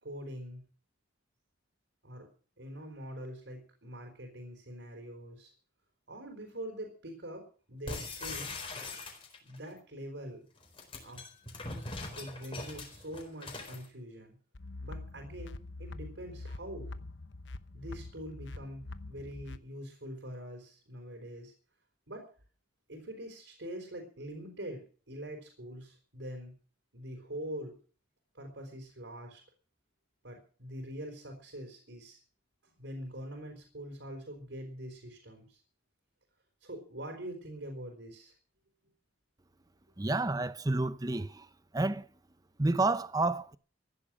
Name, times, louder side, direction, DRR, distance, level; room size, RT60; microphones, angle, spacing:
voice 1, 0.0-0.6 2.0-2.3 2.6-5.5 6.1-8.6 9.5-10.4 11.0-11.3 12.1-14.4 14.8-16.9 17.7-21.5 22.1-22.2 22.9-26.5 26.9-27.8 28.3-29.4 30.2-32.2 32.6-35.6 36.6-38.3, equal, 70° right, 4.5 m, -44 dB
sound 1, 7.9-9.6 10.6-13.9, left 3 dB, 30° left, 4.3 m, -41 dB
sound 2, 14.5-19.6, left 2 dB, 75° left, 0.9 m, -44 dB
voice 2, 40.0-41.5 41.7-42.0 42.6-43.6, right 2 dB, 20° right, 0.7 m, -29 dB
15.5 x 11.0 x 6.3 m
head